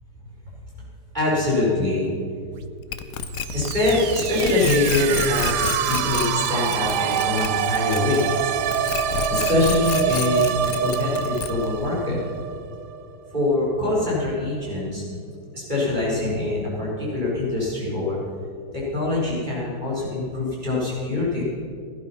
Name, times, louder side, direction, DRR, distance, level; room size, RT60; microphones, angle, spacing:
voice 1, 1.1-2.1 2.6-2.7 3.5-8.5 9.3-10.5 10.8-12.2 13.3-15.0 15.5-18.2 18.7-21.4, left 2 dB, 20° right, -6 dB, 4.8 m, -24 dB
sound 1, 2.9-8.4 8.7-11.8, left 9 dB, 65° left, 0.9 m, -30 dB
sound 2, 3.3-13.0, right 9 dB, 70° right, 1.2 m, -25 dB
16.5 x 11.5 x 5.7 m, 2.4 s
omnidirectional pair, 2.1 m